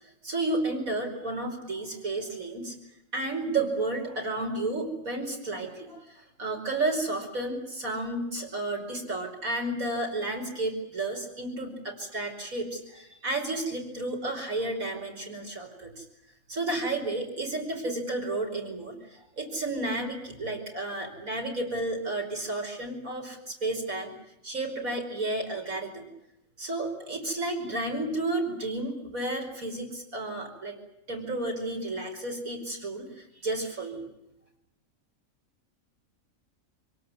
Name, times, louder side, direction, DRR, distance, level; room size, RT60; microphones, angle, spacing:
voice 1, 0.2-2.8 3.1-16.1 16.5-24.1 24.4-26.1 26.6-30.8 31.1-34.0, right 2 dB, 85° right, 2 dB, 5.6 m, -32 dB
27.0 x 18.0 x 9.7 m, 0.87 s
omnidirectional pair, 1.4 m